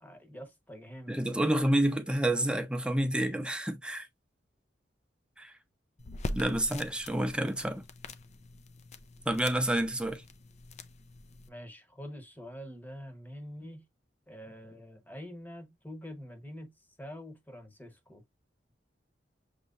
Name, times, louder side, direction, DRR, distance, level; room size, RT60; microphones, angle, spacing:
voice 1, 0.0-1.2 11.5-13.9 14.3-16.7 17.0-18.2, equal, 10° left, 1.0 m, -45 dB
voice 2, 1.1-4.1 5.4-5.5 6.3-7.8 9.3-10.2, right 1 dB, 5° right, 0.7 m, -29 dB
sound 1, 6.0-11.5, left 2 dB, 40° left, 0.5 m, -43 dB
6.5 x 3.0 x 2.4 m
head